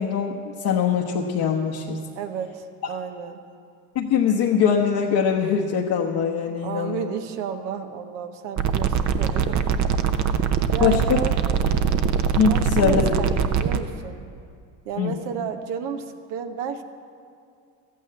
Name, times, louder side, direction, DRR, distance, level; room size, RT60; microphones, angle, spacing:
voice 1, 0.0-2.0 3.9-7.1 10.8-11.2 12.3-13.1 15.0-15.2, left 7 dB, 50° left, -1 dB, 1.2 m, -22 dB
voice 2, 2.1-3.4 6.6-9.7 10.7-11.5 12.4-14.2 14.8-16.8, right 7 dB, 65° right, 6 dB, 1.1 m, -32 dB
sound 1, 8.6-13.8, right 7 dB, 35° right, 0.9 m, -22 dB
13.5 x 9.1 x 7.6 m, 2.3 s
hypercardioid pair, 75°, 48 cm